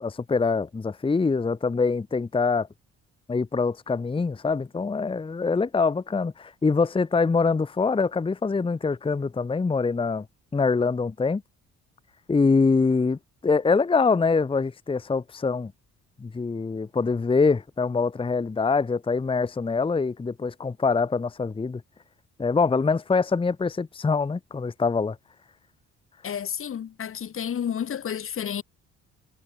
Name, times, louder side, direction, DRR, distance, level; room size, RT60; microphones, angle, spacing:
voice 1, 0.0-2.7 3.3-10.2 10.5-11.4 12.3-13.2 13.4-15.7 16.2-21.8 22.4-25.2, left 4 dB, 15° left, 0.8 m, -24 dB
voice 2, 26.2-28.6, left 8 dB, 45° left, 1.0 m, -31 dB
cardioid pair, 90°, 30 cm